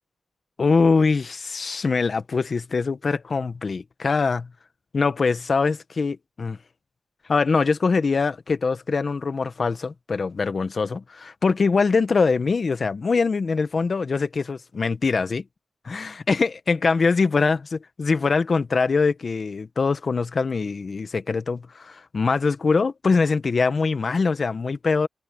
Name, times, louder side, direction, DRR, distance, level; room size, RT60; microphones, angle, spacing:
voice 1, 0.6-4.5 4.9-6.6 7.3-15.4 15.8-17.6 18.0-25.1, left 4 dB, 50° left, 1.3 m, -23 dB
cardioid pair, 80°, 0 cm